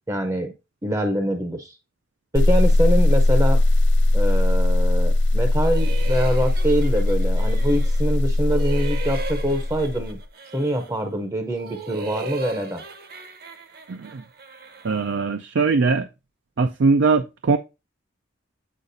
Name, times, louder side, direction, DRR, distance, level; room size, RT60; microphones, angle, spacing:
voice 1, 0.1-0.5 0.8-1.8 2.3-3.6 4.1-10.2 10.5-12.8, equal, 15° right, 0.6 m, -24 dB
sound 1, 2.3-10.2, left 1 dB, 65° left, 0.5 m, -19 dB
sound 2, 5.5-8.1 8.5-11.0 11.4-15.2, right 3 dB, 50° right, 0.9 m, -38 dB
voice 2, 13.9-14.2 14.8-16.1 16.6-17.6, right 4 dB, 65° right, 0.4 m, -21 dB
8.3 x 4.8 x 2.6 m
head